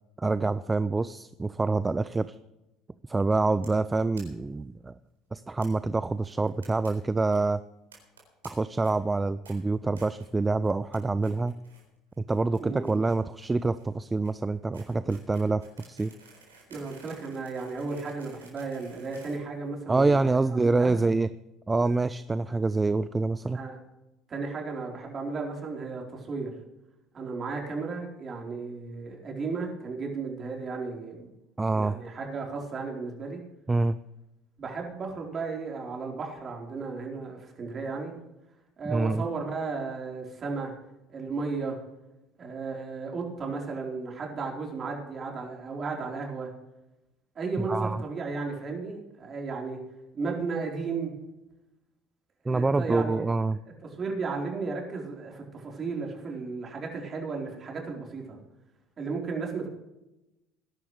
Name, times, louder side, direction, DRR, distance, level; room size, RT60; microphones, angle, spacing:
voice 1, 0.2-2.4 3.1-5.0 5.3-7.6 8.4-11.6 12.2-16.1 19.9-21.3 21.7-23.6 31.6-32.0 33.7-34.0 38.8-39.2 47.7-48.0 52.5-53.6, right 3 dB, 20° right, 15 dB, 0.5 m, -26 dB
sound 1, 3.6-3.8 4.1-4.2 4.5-4.6 4.8-4.9 5.6-5.7 6.2-6.9 7.2-7.4 7.9-8.5 8.8-9.1 9.4-9.5 10.0-10.3 10.6-11.0 11.2-11.8 12.1-20.2, right 4 dB, 85° right, 4.0 m, -54 dB
voice 2, 16.7-20.2 20.6-21.0 23.5-23.8 24.3-26.5 27.1-31.3 31.7-33.4 34.6-38.2 38.8-40.7 41.1-41.8 42.4-46.5 47.3-49.8 50.1-51.1 52.4-53.2 53.8-58.4 59.0-59.7, right 4 dB, 35° right, 0 dB, 4.3 m, -34 dB
20.5 x 11.0 x 3.4 m, 0.93 s
hypercardioid pair, 65°, 0 cm